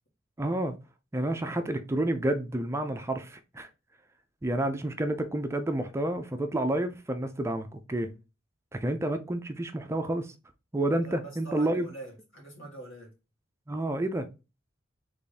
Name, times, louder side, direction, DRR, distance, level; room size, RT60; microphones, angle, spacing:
voice 1, 0.4-0.8 1.1-3.7 4.4-8.1 8.7-10.3 10.7-11.9 13.7-14.3, right 1 dB, 15° right, 0.4 m, -29 dB
voice 2, 10.9-13.1, right 2 dB, 75° left, 2.0 m, -44 dB
3.5 x 3.3 x 4.1 m
head